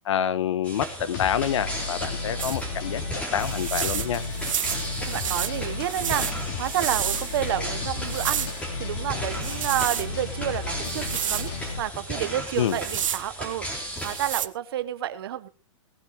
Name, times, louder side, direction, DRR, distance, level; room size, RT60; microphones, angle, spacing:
voice 1, 0.0-3.0 3.3-4.2 12.6-12.8, left 9 dB, 65° left, 15 dB, 1.3 m, -27 dB
sound 1, 0.6-14.3, equal, 5° left, 3.2 m, -36 dB
sound 2, 1.1-11.8, left 4 dB, 35° left, 3.6 m, -34 dB
sound 3, 2.4-2.6 3.4-7.5 8.0-8.6 9.3-10.1 10.8-11.5 12.6-13.2 14.0-14.5, right 9 dB, 80° right, 0.9 m, -30 dB
voice 2, 5.0-6.3 6.6-15.5, right 11 dB, 50° right, 13 dB, 1.1 m, -30 dB
18.5 x 15.0 x 3.1 m, 0.32 s
hypercardioid pair, 165°, 16 cm